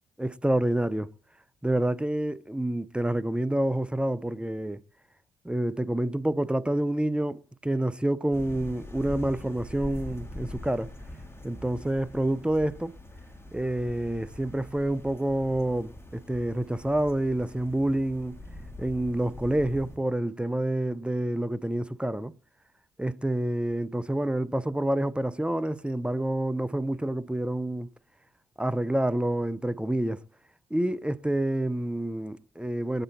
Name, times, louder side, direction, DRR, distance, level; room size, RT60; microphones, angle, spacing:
voice 1, 0.2-1.1 1.6-4.8 5.4-10.9 11.4-12.9 13.5-18.4 18.8-22.3 23.0-27.9 28.6-30.2 30.7-33.0, right 1 dB, 5° right, 0.8 m, -28 dB
sound 1, 8.3-20.0, left 1 dB, 15° left, 3.6 m, -43 dB
20.5 x 9.0 x 4.3 m
hypercardioid pair, 50°, 16 cm